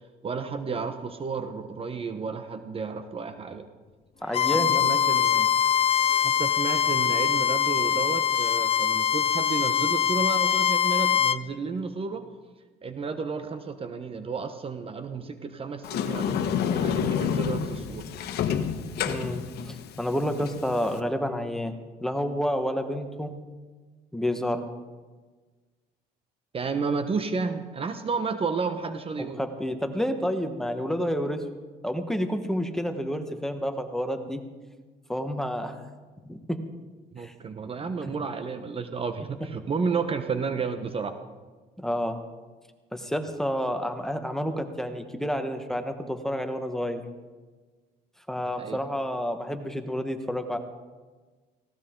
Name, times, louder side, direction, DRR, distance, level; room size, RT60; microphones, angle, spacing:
voice 1, 0.2-3.7 4.5-5.5 6.2-12.3 12.8-18.0 26.5-29.4 37.1-41.1 48.6-48.8, right 5 dB, 35° right, 8 dB, 1.0 m, -32 dB
voice 2, 4.2-4.8 19.1-23.3 24.1-24.7 29.2-31.5 31.8-34.4 35.1-35.8 36.3-36.6 37.2-37.3 38.0-38.1 41.8-42.2 42.9-47.0 48.3-50.6, equal, 5° left, 6 dB, 1.5 m, -29 dB
Bowed string instrument, 4.3-11.4, left 9 dB, 35° left, 0.5 m, -23 dB
Sliding door, 15.8-21.0, left 8 dB, 70° left, 1.3 m, -29 dB
18.5 x 17.0 x 3.8 m, 1.3 s
cardioid pair, 110°, 17 cm